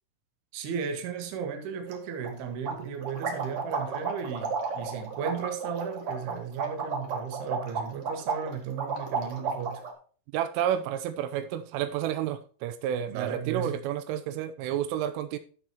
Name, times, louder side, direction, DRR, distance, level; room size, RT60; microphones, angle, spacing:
voice 1, 0.5-9.8 13.1-13.8, right 7 dB, 65° right, 3.2 m, -35 dB
sound 1, 1.9-2.0 2.2-2.3 2.6-9.9, right 5 dB, 50° right, 1.7 m, -33 dB
voice 2, 10.3-15.4, right 10 dB, 90° right, 3.3 m, -30 dB
13.5 x 6.4 x 2.9 m
omnidirectional pair, 5.6 m